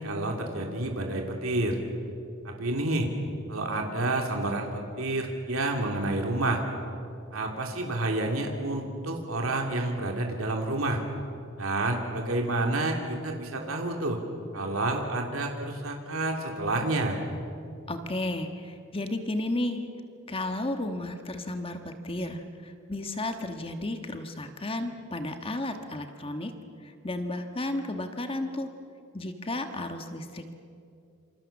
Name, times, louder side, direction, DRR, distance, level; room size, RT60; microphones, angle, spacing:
voice 1, 0.0-1.8 2.4-3.1 3.5-6.6 7.3-11.0 11.6-14.2 14.5-17.2, right 2 dB, 80° right, 2 dB, 3.0 m, -29 dB
voice 2, 17.9-19.9 20.3-26.5 26.8-28.7 29.1-30.6, left 1 dB, 25° left, 6 dB, 1.4 m, -33 dB
27.5 x 27.0 x 7.3 m, 2.5 s
head